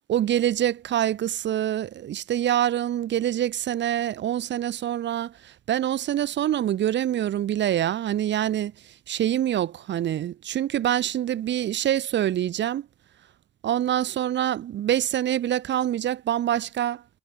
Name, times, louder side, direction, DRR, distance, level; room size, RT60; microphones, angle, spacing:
voice 1, 0.1-8.7 9.1-12.9 13.6-17.0, right 11 dB, 65° right, 1.1 m, -25 dB
cardioid pair, 90°, 20 cm